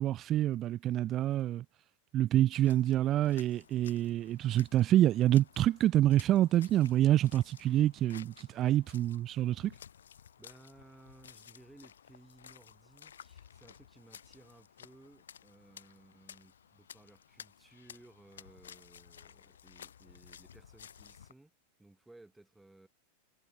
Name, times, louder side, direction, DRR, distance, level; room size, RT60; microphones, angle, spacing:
voice 1, 0.0-1.6 2.1-9.7, right 13 dB, 30° right, 0.4 m, -27 dB
sound 1, 2.5-21.3, left 8 dB, 65° left, 7.7 m, -55 dB
voice 2, 10.4-21.5 21.8-22.9, right 2 dB, 5° right, 7.2 m, -59 dB
figure-of-eight pair, 90°, 0 cm